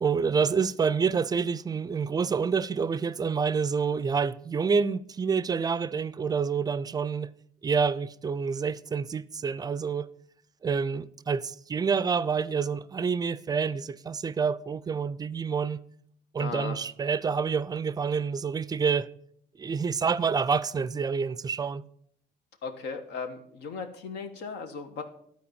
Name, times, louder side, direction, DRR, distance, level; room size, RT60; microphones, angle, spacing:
voice 1, 0.0-7.3 7.6-10.1 10.6-15.8 16.3-19.1 19.6-21.8, right 5 dB, 25° right, 0.4 m, -28 dB
voice 2, 16.4-16.8 22.6-25.0, left 5 dB, 85° left, 1.3 m, -37 dB
12.0 x 4.6 x 6.8 m
cardioid pair, 110°, 17 cm